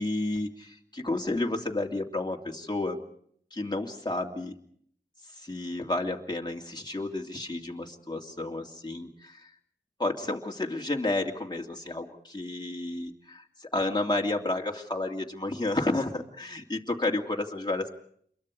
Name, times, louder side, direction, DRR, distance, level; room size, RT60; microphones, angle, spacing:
voice 1, 0.0-3.0 3.5-4.5 5.3-9.5 10.0-18.0, left 2 dB, 25° left, 1 dB, 2.8 m, -31 dB
28.5 x 23.0 x 4.9 m, 0.63 s
wide cardioid pair, 55°, 18 cm